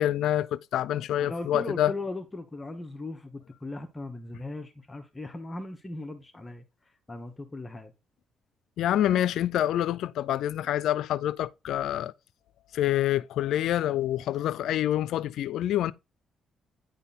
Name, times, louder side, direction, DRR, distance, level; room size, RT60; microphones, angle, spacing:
voice 1, 0.0-1.9 8.8-12.1 12.7-15.9, left 12 dB, 80° left, 0.4 m, -27 dB
voice 2, 1.2-6.6 7.1-7.9, left 2 dB, 20° left, 1.0 m, -38 dB
9.8 x 3.9 x 4.1 m
cardioid pair, 90°, 0 cm